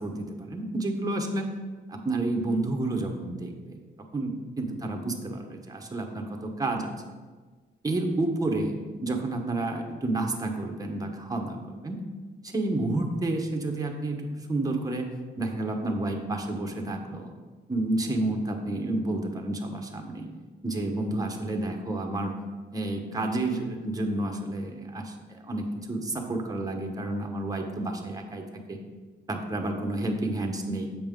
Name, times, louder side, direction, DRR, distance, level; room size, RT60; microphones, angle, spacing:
voice 1, 0.0-1.5 1.9-3.8 4.1-6.9 7.8-8.7 9.0-11.6 11.8-12.0 12.4-15.1 15.4-17.3 17.7-20.3 20.6-22.3 22.7-28.4 28.7-28.8 29.3-30.9, right 2 dB, 20° right, 2 dB, 0.9 m, -30 dB
7.3 x 5.2 x 3.7 m, 1.4 s
cardioid pair, 90°, 20 cm